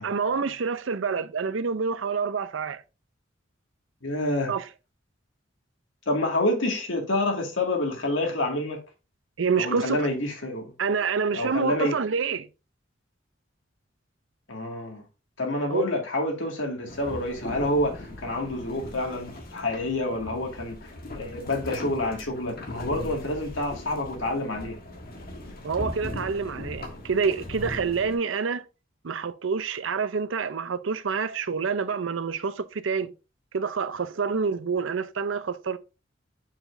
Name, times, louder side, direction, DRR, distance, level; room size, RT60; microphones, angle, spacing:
voice 1, 0.0-2.8 4.5-4.7 9.4-10.1 10.8-12.5 15.7-15.9 25.6-28.6 29.0-33.1 33.5-35.8, right 5 dB, 80° right, 0.6 m, -27 dB
voice 2, 4.0-4.5 6.1-8.8 9.6-10.7 11.3-12.0 14.5-15.0 15.4-20.8 21.2-24.8, left 1 dB, 85° left, 2.1 m, -28 dB
sound 1, 16.9-28.1, left 1 dB, 50° left, 1.6 m, -39 dB
7.1 x 5.9 x 2.6 m
head